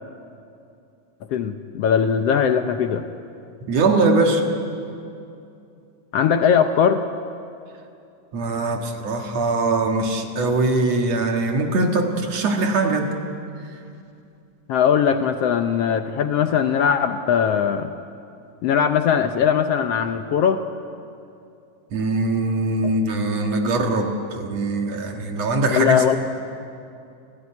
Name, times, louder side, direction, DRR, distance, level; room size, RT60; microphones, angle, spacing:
voice 1, 1.3-3.1 6.1-7.0 14.7-17.9 18.6-20.6 22.8-22.9 25.7-26.2, left 7 dB, 70° left, 8 dB, 1.6 m, -20 dB
voice 2, 3.7-4.4 8.3-13.1 21.9-26.2, right 2 dB, 60° right, 3 dB, 2.8 m, -22 dB
29.5 x 15.0 x 9.7 m, 2.6 s
omnidirectional pair, 3.4 m